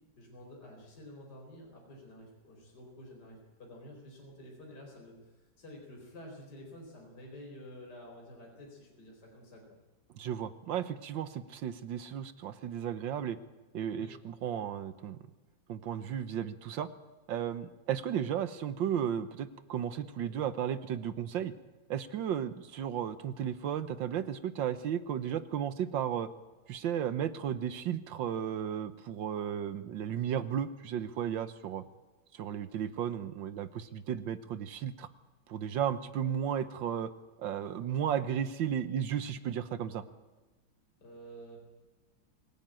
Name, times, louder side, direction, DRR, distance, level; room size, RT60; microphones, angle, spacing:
voice 1, 0.2-9.8 14.0-14.1 20.2-20.4 41.0-41.6, equal, 55° left, 0 dB, 4.8 m, -50 dB
voice 2, 10.1-13.4 13.7-15.2 15.7-16.9 17.3-21.5 21.9-26.3 26.7-31.8 32.3-35.1 35.5-37.1 37.4-40.0, right 9 dB, 70° right, 13 dB, 1.6 m, -34 dB
25.0 x 16.5 x 8.9 m, 1.2 s
omnidirectional pair, 2.2 m